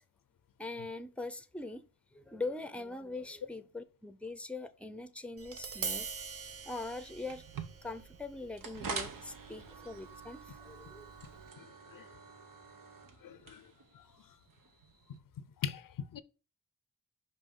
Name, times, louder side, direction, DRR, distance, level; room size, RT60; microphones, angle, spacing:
voice 1, 0.6-6.1 6.6-7.4 7.8-11.1, left 3 dB, 5° left, 0.6 m, -42 dB
Tap, 5.4-11.5, right 5 dB, 45° right, 0.7 m, -45 dB
sound 1, 7.3-15.2, right 5 dB, 90° right, 1.0 m, -46 dB
voice 2, 13.2-13.6 15.6-16.2, left 7 dB, 90° left, 0.5 m, -39 dB
5.5 x 5.4 x 3.7 m
wide cardioid pair, 75°, 32 cm